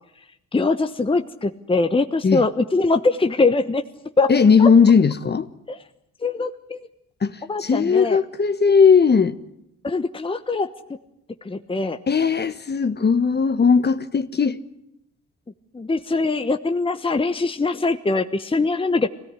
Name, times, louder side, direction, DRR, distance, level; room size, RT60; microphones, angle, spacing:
voice 1, 0.5-3.8 4.2-4.3 4.6-4.7 5.7-5.8 6.2-6.8 7.5-8.2 9.8-10.7 11.4-12.0 15.7-19.1, left 3 dB, 20° left, 1.2 m, -22 dB
voice 2, 4.3-5.5 7.2-9.4 12.1-14.6, left 5 dB, 35° left, 1.4 m, -17 dB
24.0 x 17.5 x 9.8 m
cardioid pair, 90°, 30 cm